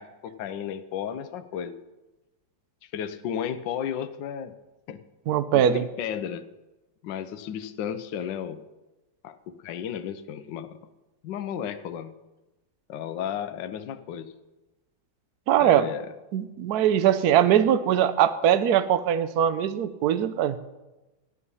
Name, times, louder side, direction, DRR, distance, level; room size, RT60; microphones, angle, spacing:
voice 1, 0.0-1.8 2.9-4.5 4.9-5.0 5.5-6.5 7.0-8.7 9.2-10.8 11.2-12.1 12.9-14.3 15.6-16.1, left 9 dB, 70° left, 11 dB, 1.4 m, -33 dB
voice 2, 5.3-5.9 15.5-15.9 16.3-20.6, right 10 dB, 65° right, 13 dB, 1.1 m, -21 dB
14.0 x 9.9 x 5.5 m, 1.1 s
omnidirectional pair, 2.1 m